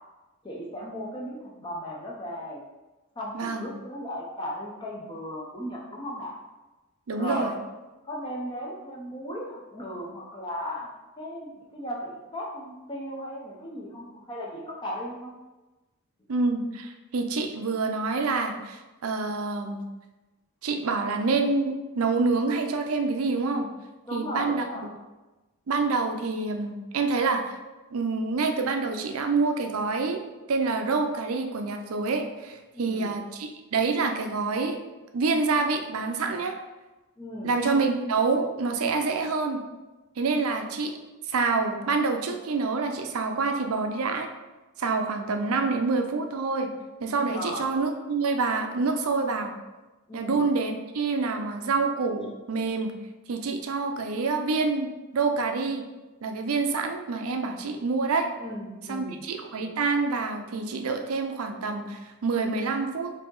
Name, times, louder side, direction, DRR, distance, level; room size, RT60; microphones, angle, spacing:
voice 1, 0.4-2.6 3.2-6.3 7.1-7.5 8.0-15.3 24.0-24.9 32.7-33.1 37.2-37.5 47.3-47.7 50.1-50.4 58.4-59.2, equal, 20° left, -3 dB, 0.6 m, -36 dB
voice 2, 3.3-3.7 7.1-7.5 16.3-19.8 20.6-23.7 24.1-24.9 25.7-27.6 27.9-30.2 30.5-34.8 35.1-36.5 37.4-39.6 40.2-40.9 41.3-44.3 44.8-46.7 47.0-49.5 50.1-52.9 53.3-55.8 56.2-58.3 58.9-63.1, right 4 dB, 75° right, 5 dB, 0.5 m, -27 dB
4.8 x 2.8 x 3.8 m, 1.1 s
head